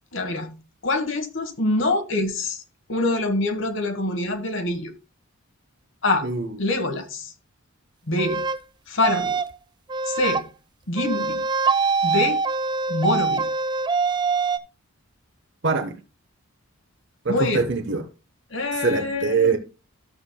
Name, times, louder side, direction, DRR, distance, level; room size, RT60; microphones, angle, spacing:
voice 1, 0.1-0.6 0.8-2.6 2.9-4.9 6.0-6.3 6.6-7.3 8.1-8.4 8.9-9.4 10.0-10.5 10.9-11.5 12.0-12.4 12.9-13.5 17.3-17.7 18.5-19.6, left 2 dB, 60° left, 1.3 m, -25 dB
voice 2, 6.2-6.5 15.6-15.9 17.2-18.0 18.8-19.6, right 4 dB, 55° right, 1.1 m, -23 dB
sound 1, 8.2-8.6 9.0-9.5 9.9-10.4 11.0-14.6, right 4 dB, 20° right, 0.3 m, -24 dB
13.0 x 7.2 x 2.2 m
head